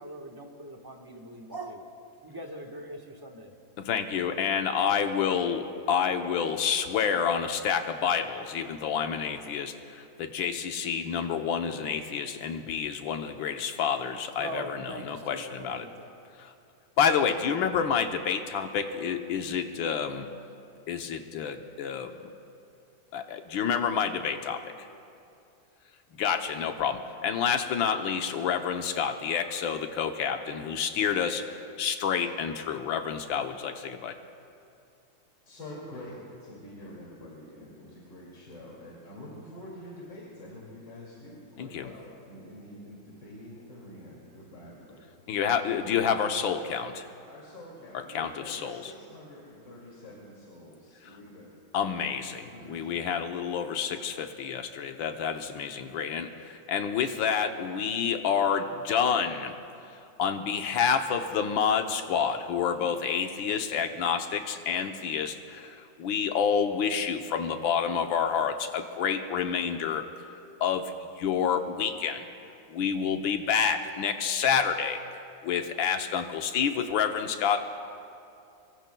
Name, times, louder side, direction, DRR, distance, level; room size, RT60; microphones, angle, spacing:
voice 1, 0.0-1.9 2.2-3.5 14.4-16.1, right 1 dB, 15° right, 1.1 m, -41 dB
voice 2, 3.8-15.8 16.4-16.5 17.0-20.3 20.9-22.2 23.1-24.7 26.1-31.4 31.8-34.2 41.6-41.9 45.3-47.1 47.9-48.9 51.7-59.5 60.2-70.0 70.6-72.3 72.7-75.0 75.4-77.6, left 7 dB, 85° left, 1.6 m, -28 dB
voice 3, 35.5-45.1 47.3-51.6 52.5-53.3, left 1 dB, 65° left, 3.2 m, -46 dB
24.5 x 23.5 x 2.3 m
omnidirectional pair, 2.1 m